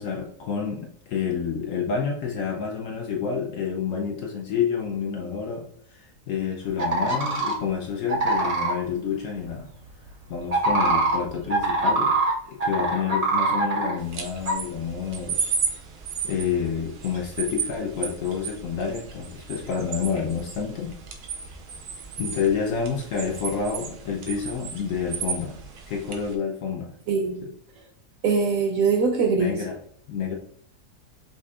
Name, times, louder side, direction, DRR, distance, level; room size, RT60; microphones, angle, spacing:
voice 1, 0.0-5.7 5.9-9.7 10.3-12.1 12.5-15.6 16.2-21.0 22.2-25.6 25.9-26.9 27.4-27.5 29.4-29.8 30.1-30.4, left 6 dB, 65° left, 1 dB, 0.8 m, -29 dB
sound 1, 6.8-7.5 8.1-8.7 10.4-12.3 12.6-13.9 14.4-14.5, right 2 dB, 45° right, 0.4 m, -23 dB
sound 2, 14.0-26.4, right 5 dB, 85° right, 1.3 m, -34 dB
voice 2, 27.1-27.4 28.2-29.6, right 5 dB, 70° right, 5 dB, 0.9 m, -22 dB
5.3 x 2.5 x 2.4 m, 0.63 s
omnidirectional pair, 1.7 m